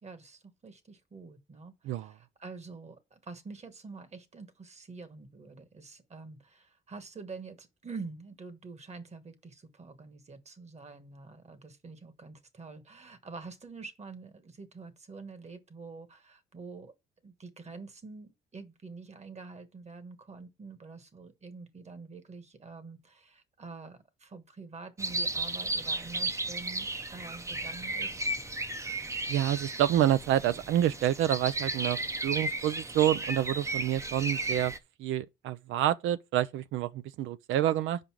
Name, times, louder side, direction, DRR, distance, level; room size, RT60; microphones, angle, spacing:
voice 1, 0.0-16.9 17.2-28.2, right 4 dB, 35° right, 1.4 m, -46 dB
sound 1, 25.0-34.8, right 2 dB, 15° right, 0.6 m, -34 dB
voice 2, 29.3-34.7 35.0-38.0, right 12 dB, 85° right, 0.5 m, -28 dB
5.4 x 5.1 x 6.0 m
cardioid pair, 90°, 20 cm